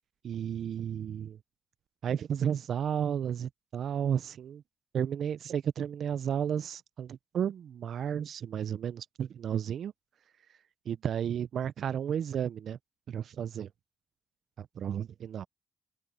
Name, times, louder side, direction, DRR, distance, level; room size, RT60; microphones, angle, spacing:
voice 1, 0.2-1.4 2.0-4.6 4.9-9.9 10.9-12.8 13.1-13.7 14.6-15.5, right 8 dB, 70° right, 0.7 m, -33 dB
open air
hypercardioid pair, 40°, 0 cm